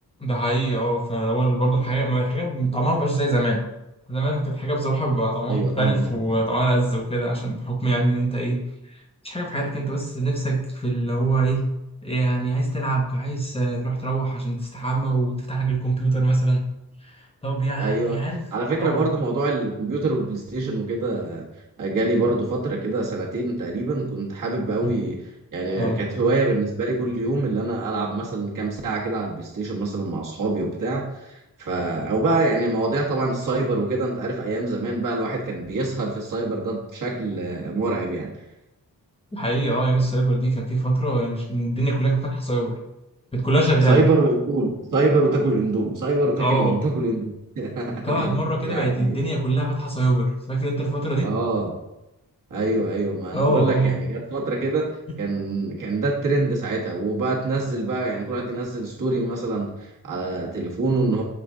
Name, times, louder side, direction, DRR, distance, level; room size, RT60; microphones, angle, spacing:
voice 1, 0.2-3.6 4.1-8.6 9.2-11.6 12.0-16.6 17.4-18.4 18.8-19.1 24.8-25.0 25.8-26.0 39.3-42.8 43.3-44.0 46.4-46.8 47.9-51.3 53.3-54.0, right 2 dB, 15° left, -1 dB, 0.9 m, -23 dB
voice 2, 5.5-6.4 17.8-18.2 18.5-21.5 21.8-25.2 25.5-38.3 43.8-49.2 51.2-51.8 52.5-61.2, right 2 dB, 60° right, -3 dB, 1.5 m, -25 dB
7.3 x 3.8 x 3.7 m, 0.93 s
wide cardioid pair, 165°, 35 cm